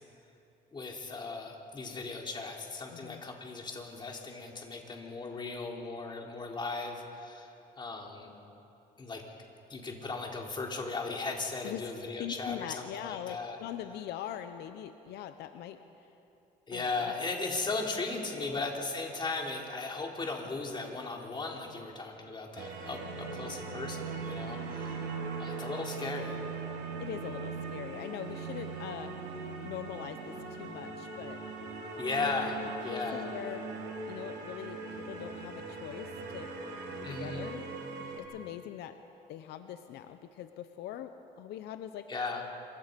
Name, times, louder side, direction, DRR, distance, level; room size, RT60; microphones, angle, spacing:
voice 1, 0.7-7.5 7.8-8.3 9.0-9.2 9.7-13.6 16.7-26.4 32.0-33.3 37.0-37.5 42.1-42.4, left 3 dB, 25° left, 0 dB, 3.6 m, -37 dB
voice 2, 2.9-3.2 11.6-11.9 12.2-15.8 16.7-17.1 18.4-18.6 27.0-31.4 32.6-36.5 36.9-37.7 38.2-39.0 39.3-42.1, left 11 dB, 80° left, 9 dB, 1.0 m, -42 dB
sound 1, 22.6-38.2, right 4 dB, 80° right, 4.0 m, -40 dB
27.0 x 24.0 x 5.4 m, 2.9 s
cardioid pair, 110°, 17 cm